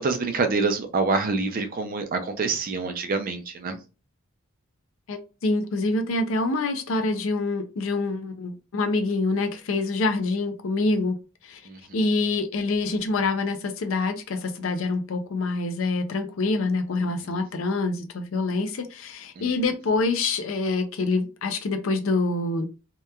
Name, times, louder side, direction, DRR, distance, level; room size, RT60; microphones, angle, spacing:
voice 1, 0.0-3.8 11.7-11.8 17.0-17.4 19.4-19.5, right 4 dB, 40° right, 0.4 m, -26 dB
voice 2, 5.1-11.2 11.4-11.6 11.9-22.7, left 3 dB, 65° left, 0.4 m, -26 dB
2.8 x 2.2 x 2.3 m
head